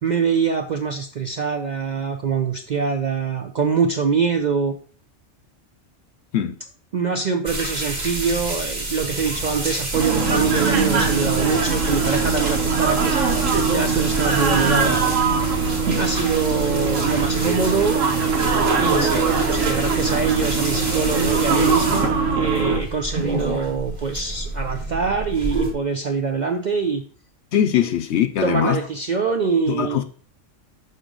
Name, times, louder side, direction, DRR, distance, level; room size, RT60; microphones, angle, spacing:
voice 1, 0.0-4.7 6.9-15.0 16.0-18.0 18.8-27.0 28.4-30.0, right 5 dB, 55° right, 0.5 m, -24 dB
sound 1, 7.5-25.7, right 2 dB, 35° right, 1.3 m, -29 dB
sound 2, 9.9-22.8, right 4 dB, 85° right, 1.4 m, -21 dB
voice 2, 27.5-28.8 29.7-30.0, left 10 dB, 70° left, 0.8 m, -21 dB
6.6 x 4.9 x 3.8 m
omnidirectional pair, 1.3 m